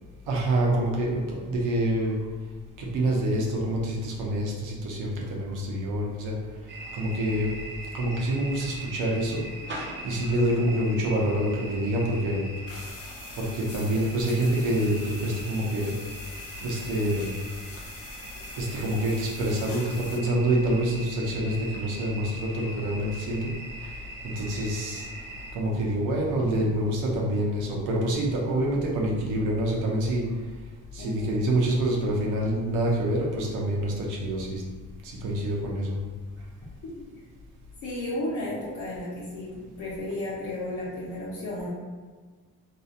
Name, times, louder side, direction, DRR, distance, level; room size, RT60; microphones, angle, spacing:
voice 1, 0.3-2.1 2.8-6.3 6.9-7.5 7.9-9.4 10.0-12.4 13.4-15.9 16.6-17.3 18.6-23.5 23.8-23.9 24.4-25.1 25.5-30.2 30.9-34.6 35.0-36.0, right 1 dB, 90° right, -2 dB, 0.7 m, -26 dB
sound 1, 6.7-25.5, right 1 dB, 35° right, 0.6 m, -41 dB
sound 2, 12.7-20.2, left 4 dB, 50° left, 0.5 m, -45 dB
voice 2, 31.0-31.4 37.8-41.7, left 1 dB, 85° left, -8 dB, 0.7 m, -33 dB
2.7 x 2.4 x 2.4 m, 1.4 s
cardioid pair, 90°, 30 cm